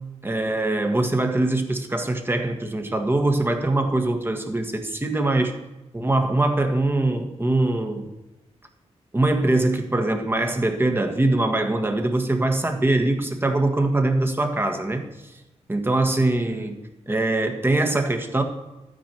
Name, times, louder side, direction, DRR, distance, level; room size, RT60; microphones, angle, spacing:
voice 1, 0.2-5.5 5.9-8.1 9.1-15.0 15.7-16.8 17.1-18.4, right 2 dB, 20° right, 5 dB, 1.6 m, -22 dB
12.5 x 9.5 x 4.4 m, 1.1 s
cardioid pair, 80°, 12 cm